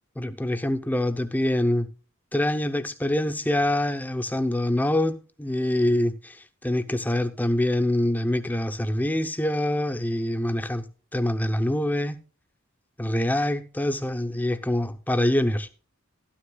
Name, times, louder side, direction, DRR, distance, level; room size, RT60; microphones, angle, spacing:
voice 1, 0.2-1.9 2.3-10.9 11.1-12.2 13.0-15.7, left 1 dB, 10° left, 8 dB, 0.7 m, -25 dB
13.0 x 12.5 x 2.3 m, 0.35 s
head